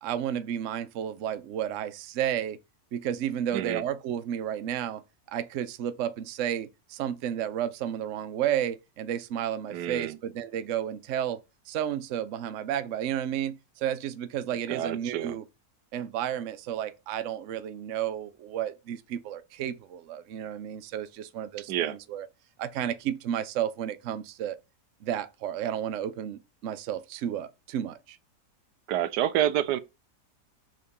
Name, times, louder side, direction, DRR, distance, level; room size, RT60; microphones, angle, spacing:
voice 1, 0.0-2.6 2.9-5.0 5.3-11.4 11.7-15.4 15.9-22.3 22.6-24.6 25.0-28.2, right 10 dB, 60° right, 0.9 m, -32 dB
voice 2, 3.5-3.8 9.7-10.2 14.7-15.4 21.7-22.0 28.9-29.8, right 12 dB, 85° right, 1.2 m, -28 dB
6.5 x 3.9 x 5.2 m
omnidirectional pair, 1.7 m